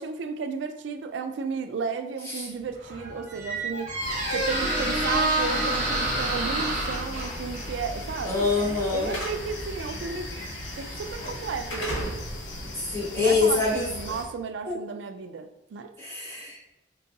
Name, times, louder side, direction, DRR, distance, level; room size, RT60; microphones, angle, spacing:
voice 1, 0.0-4.0 4.3-10.3 10.8-12.1 13.2-15.9, right 5 dB, 65° right, 8 dB, 0.3 m, -34 dB
Squeak, 2.6-11.4, right 1 dB, 40° right, 1.0 m, -30 dB
sound 1, 4.0-14.2, left 1 dB, 90° left, 0.7 m, -37 dB
Slam / Alarm, 6.3-14.4, equal, 65° left, 1.2 m, -39 dB
voice 2, 8.2-9.1 12.9-13.9 14.7-14.8 16.0-16.8, left 3 dB, 15° left, -7 dB, 1.0 m, -25 dB
3.7 x 2.3 x 2.7 m, 0.96 s
head